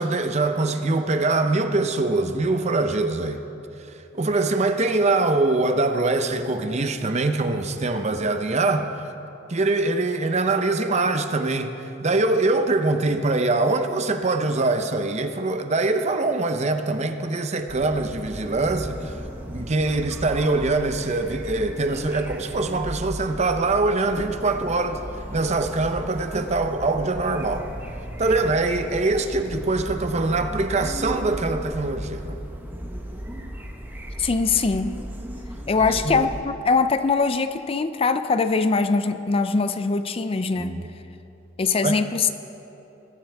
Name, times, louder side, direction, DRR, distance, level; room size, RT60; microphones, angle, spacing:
voice 1, 0.0-3.4 4.1-9.0 9.5-19.2 19.5-25.0 25.3-27.7 28.2-32.4 35.8-36.2 40.6-40.9 41.8-41.9, right 2 dB, 35° right, 7 dB, 0.7 m, -23 dB
sound 1, 17.7-36.4, equal, 10° right, 1.0 m, -36 dB
voice 2, 34.2-35.0 35.7-36.3 36.6-40.8 41.6-42.3, left 4 dB, 30° left, 11 dB, 0.4 m, -22 dB
21.5 x 12.5 x 3.4 m, 3.0 s
head